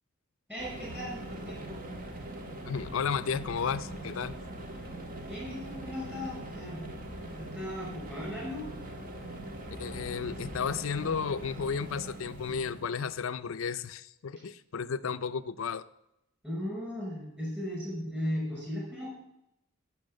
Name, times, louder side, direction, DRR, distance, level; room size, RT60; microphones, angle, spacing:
voice 1, 0.5-1.8 5.3-6.8 7.3-8.6 16.4-19.1, equal, 10° right, -5 dB, 5.6 m, -37 dB
sound 1, 0.6-12.9, right 1 dB, 40° right, 1.5 m, -42 dB
voice 2, 2.7-4.4 9.8-15.8, left 6 dB, 65° left, 14 dB, 0.5 m, -33 dB
12.0 x 5.8 x 7.6 m, 0.85 s
head